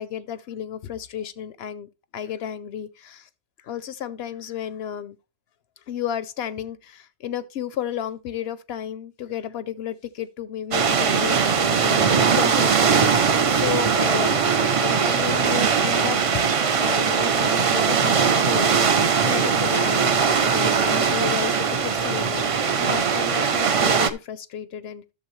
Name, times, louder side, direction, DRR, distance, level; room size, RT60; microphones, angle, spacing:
voice 1, 0.0-3.3 3.6-5.2 5.9-16.2 16.8-18.8 19.2-25.0, left 10 dB, 65° left, 0.8 m, -33 dB
sound 1, 10.7-24.1, right 6 dB, 45° right, 0.4 m, -20 dB
11.0 x 6.8 x 3.1 m
omnidirectional pair, 1.2 m